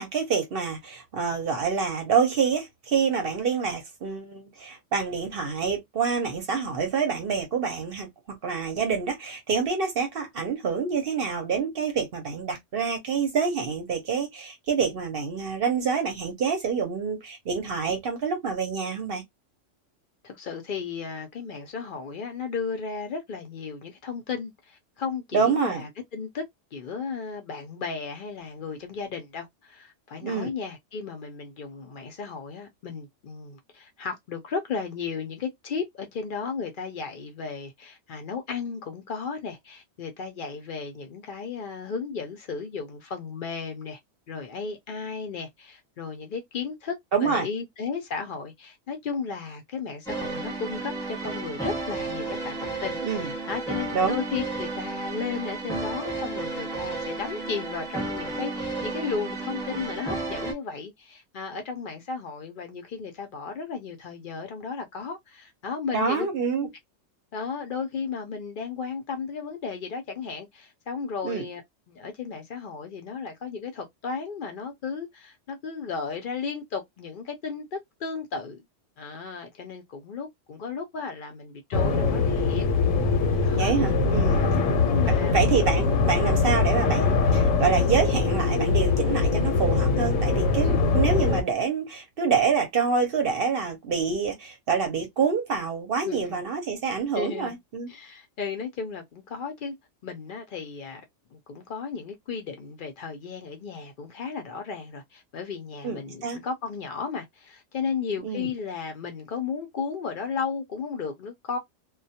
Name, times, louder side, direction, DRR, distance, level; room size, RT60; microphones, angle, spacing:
voice 1, 0.0-8.1 8.4-19.2 25.3-25.8 30.2-30.5 47.1-47.5 53.0-53.3 53.9-54.2 65.9-66.7 71.2-71.4 83.5-84.4 85.3-97.9 105.8-106.4 108.2-108.5, right 5 dB, 55° right, 0.8 m, -27 dB
voice 2, 20.2-26.4 26.7-44.0 44.3-66.3 66.6-66.7 67.3-71.6 71.9-78.6 79.0-82.6 83.4-83.7 84.3-84.5 84.9-85.6 90.6-90.9 96.0-96.4 97.1-97.6 97.9-99.7 100.0-101.0 101.3-111.6, left 5 dB, 55° left, 0.6 m, -34 dB
sound 1, 50.1-60.5, right 3 dB, 5° left, 1.0 m, -32 dB
sound 2, 81.7-91.4, left 4 dB, 80° left, 1.0 m, -22 dB
2.2 x 2.2 x 2.7 m
omnidirectional pair, 1.3 m